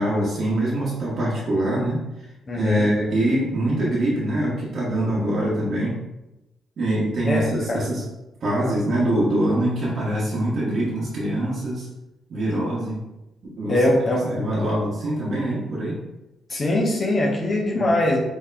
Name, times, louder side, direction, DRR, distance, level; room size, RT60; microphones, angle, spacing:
voice 1, 0.0-6.0 6.8-8.1 8.4-11.9 12.3-13.1 13.4-13.8 14.2-16.0 17.7-17.8, right 1 dB, 55° right, -6 dB, 0.9 m, -24 dB
voice 2, 2.5-2.9 7.3-7.8 13.7-14.3 16.5-18.2, left 1 dB, 40° left, -2 dB, 0.7 m, -22 dB
4.3 x 2.8 x 2.5 m, 0.96 s
cardioid pair, 90°, 0 cm